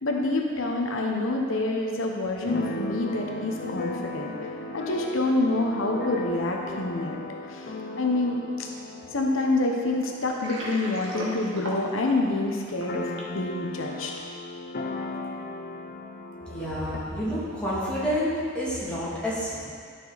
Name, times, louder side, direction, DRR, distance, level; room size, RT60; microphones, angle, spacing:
voice 1, 0.0-4.3 4.7-7.2 7.5-8.7 9.1-14.1, left 2 dB, 90° left, 1 dB, 1.0 m, -27 dB
Keyboard (musical), 2.4-12.0 12.3-12.4 12.6-17.0, left 2 dB, 45° left, 0.6 m, -36 dB
Water, 10.2-13.4, equal, 80° right, 1.5 m, -37 dB
voice 2, 16.4-19.6, equal, 5° left, -10 dB, 2.6 m, -29 dB
12.0 x 6.3 x 4.1 m, 2.2 s
head